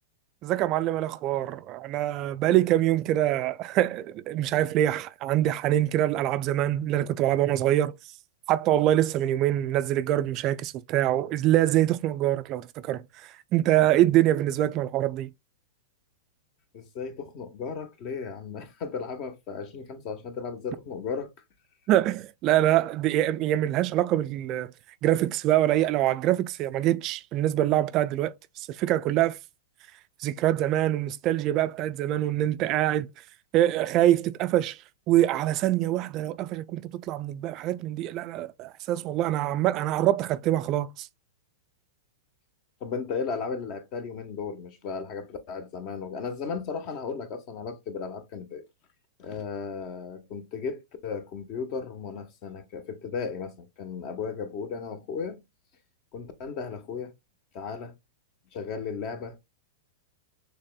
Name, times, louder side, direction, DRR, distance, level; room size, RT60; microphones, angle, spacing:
voice 1, 0.4-7.9 8.5-15.3 21.9-24.7 25.0-29.4 30.2-33.1 33.5-34.8 35.1-41.1, right 13 dB, 40° right, 0.3 m, -24 dB
voice 2, 16.7-21.3 42.8-48.6 49.2-55.4 56.1-57.1 57.5-57.9 58.5-59.4, left 5 dB, 45° left, 1.0 m, -35 dB
6.4 x 3.4 x 2.2 m
hypercardioid pair, 105°, 0 cm